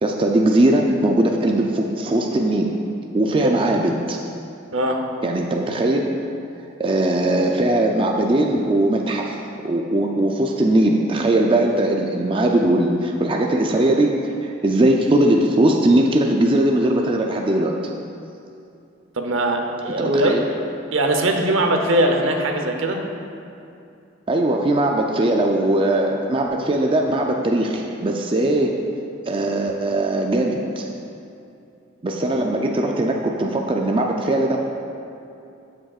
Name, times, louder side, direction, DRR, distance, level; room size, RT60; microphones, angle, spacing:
voice 1, 0.0-2.7 3.1-4.2 5.2-6.1 6.8-9.3 9.6-17.7 20.0-20.4 24.3-28.9 29.2-30.9 32.0-34.6, right 1 dB, 25° right, 1 dB, 0.4 m, -20 dB
voice 2, 19.2-20.3 20.9-23.0, right 1 dB, 75° right, 3 dB, 0.8 m, -20 dB
14.0 x 6.3 x 2.4 m, 2.6 s
head